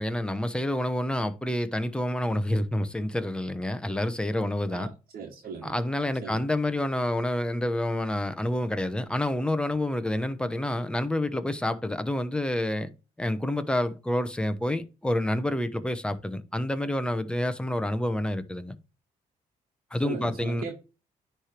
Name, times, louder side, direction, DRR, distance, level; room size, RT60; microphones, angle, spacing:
voice 1, 0.0-4.9 5.6-12.9 13.2-18.8 19.9-20.6, left 1 dB, 5° left, 0.9 m, -28 dB
voice 2, 4.7-5.7 6.2-6.4 20.0-20.8, right 5 dB, 65° right, 1.4 m, -38 dB
9.9 x 3.4 x 4.4 m
cardioid pair, 80°, 15 cm